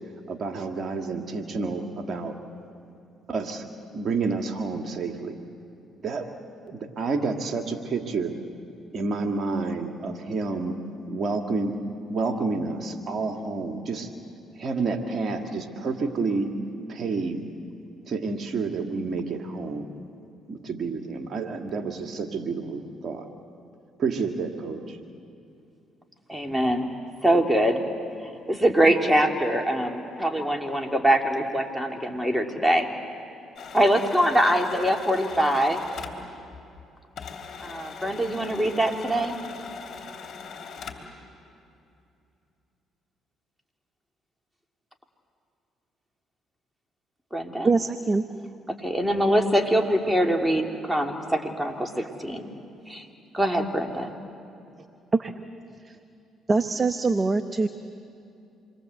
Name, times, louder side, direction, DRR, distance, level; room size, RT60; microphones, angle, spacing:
voice 1, 0.3-2.4 3.3-3.7 3.9-5.4 6.0-6.3 6.6-8.3 8.9-10.8 11.1-11.8 12.1-14.1 14.6-16.5 16.9-17.5 18.1-19.9 20.5-23.3 24.0-25.0, right 4 dB, 50° right, 4 dB, 2.2 m, -29 dB
voice 2, 26.3-26.9 27.2-27.8 28.5-32.9 33.7-35.8 37.6-39.4 47.3-47.7 48.8-52.5 52.9-53.1 53.3-54.1, right 1 dB, 10° right, 3 dB, 3.0 m, -23 dB
sound 1, 33.6-36.9 37.2-41.2, left 5 dB, 55° left, 3.4 m, -40 dB
voice 3, 47.6-48.2 55.1-55.3 55.9-56.0 56.5-57.7, right 3 dB, 30° right, 10 dB, 1.0 m, -23 dB
27.5 x 22.5 x 8.1 m, 2.6 s
supercardioid pair, 60°, 0 cm